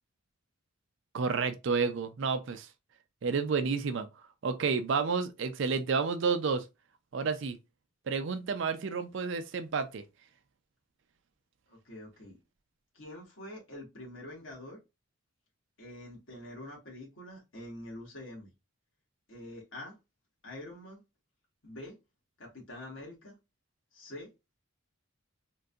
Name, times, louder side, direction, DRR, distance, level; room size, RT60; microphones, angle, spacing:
voice 1, 1.1-2.7 3.2-4.1 4.4-6.6 7.1-7.6 8.1-10.0, right 5 dB, 60° right, 0.4 m, -30 dB
voice 2, 11.7-12.4 12.9-14.8 15.8-18.5 19.3-19.9 20.4-21.0 21.6-22.0 22.4-23.3 23.9-24.3, left 1 dB, 65° left, 1.8 m, -45 dB
3.7 x 2.6 x 2.3 m
head